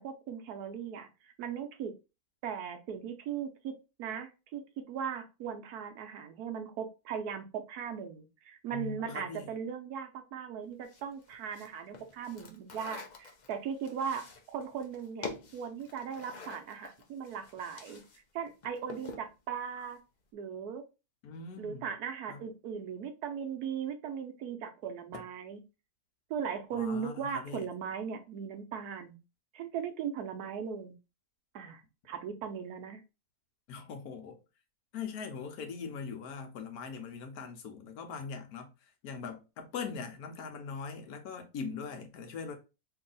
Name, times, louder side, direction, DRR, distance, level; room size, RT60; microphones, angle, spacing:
voice 1, 0.0-1.9 2.4-3.7 4.0-18.0 18.3-20.0 20.3-20.8 21.6-25.6 26.3-29.2 29.5-30.9 31.5-33.0, right 7 dB, 85° right, 1.2 m, -38 dB
voice 2, 8.7-9.5 21.2-21.9 22.3-22.5 25.1-25.2 26.7-27.7 33.7-34.4 34.9-38.7 39.0-42.6, left 5 dB, 80° left, 1.2 m, -41 dB
sound 1, 10.8-18.2 18.5-19.3, left 4 dB, 50° left, 0.5 m, -47 dB
3.0 x 2.7 x 3.8 m
omnidirectional pair, 1.6 m